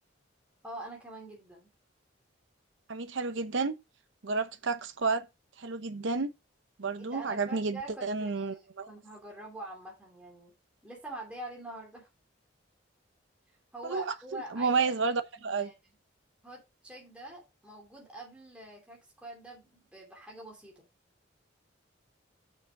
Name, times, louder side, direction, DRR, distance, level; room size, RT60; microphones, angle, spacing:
voice 1, 0.6-1.7 7.0-10.5 10.8-12.1 13.7-14.9 15.4-15.7 16.4-20.8, right 1 dB, 5° right, 2.6 m, -45 dB
voice 2, 2.9-3.7 4.2-5.2 5.6-6.3 6.8-8.9 13.9-14.1 14.5-15.7, right 4 dB, 80° right, 0.8 m, -31 dB
6.8 x 5.7 x 4.9 m
head